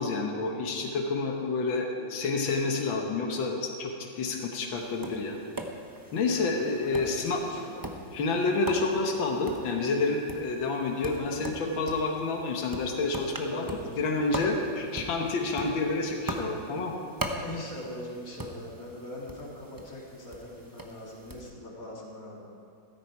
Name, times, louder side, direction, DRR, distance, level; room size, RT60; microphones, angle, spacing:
voice 1, 0.0-5.4 6.1-7.4 8.1-17.0, left 3 dB, 80° left, 2 dB, 2.0 m, -29 dB
Tap, 4.8-21.5, right 1 dB, 25° right, 0.4 m, -41 dB
voice 2, 6.3-7.9 11.1-11.6 13.4-14.1 14.7-15.1 17.3-22.4, left 1 dB, 45° left, -3 dB, 2.6 m, -42 dB
15.0 x 13.0 x 4.7 m, 2.6 s
omnidirectional pair, 2.1 m